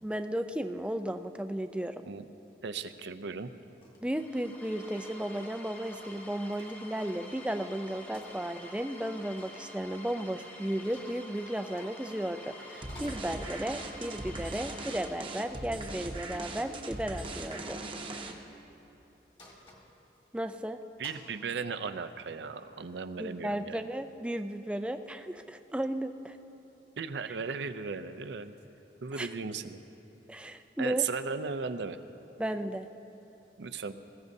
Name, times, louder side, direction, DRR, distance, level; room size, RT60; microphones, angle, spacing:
voice 1, 0.0-2.1 4.0-17.8 20.3-20.8 23.2-26.4 27.2-27.4 29.2-29.3 30.3-31.0 32.4-32.9, right 1 dB, 5° right, 8 dB, 0.3 m, -34 dB
voice 2, 2.6-3.5 21.0-23.9 27.0-28.6 29.0-29.8 30.8-32.0 33.6-33.9, right 5 dB, 75° right, 10 dB, 0.5 m, -36 dB
sound 1, 3.8-4.0 4.3-5.5 5.8-7.3 7.7-7.8 8.1-9.7 10.8-11.3 11.8-12.4 12.7-13.6 14.8-15.0 15.7-16.2 17.8-18.2 19.4-20.6 21.0-21.3, left 1 dB, 30° left, 1.8 m, -54 dB
sound 2, 4.0-15.9, left 1 dB, 10° left, 0.9 m, -49 dB
sound 3, 12.8-18.6, right 2 dB, 30° right, 0.9 m, -40 dB
20.5 x 15.5 x 2.7 m, 3.0 s
head